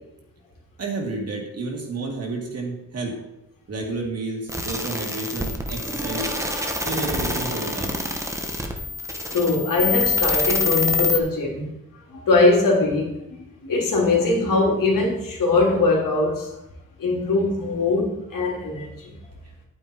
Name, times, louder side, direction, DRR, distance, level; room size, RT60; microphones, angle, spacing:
voice 1, 0.8-3.2 3.7-6.3 6.8-8.0, right 3 dB, 45° right, 0 dB, 2.4 m, -30 dB
sound 1, 4.5-11.2, left 3 dB, 10° right, 1.1 m, -26 dB
voice 2, 9.2-11.7 12.1-13.1 13.6-16.5 17.0-19.1, left 3 dB, 70° left, -1 dB, 3.1 m, -21 dB
10.5 x 8.8 x 4.5 m, 0.86 s
wide cardioid pair, 175°, 34 cm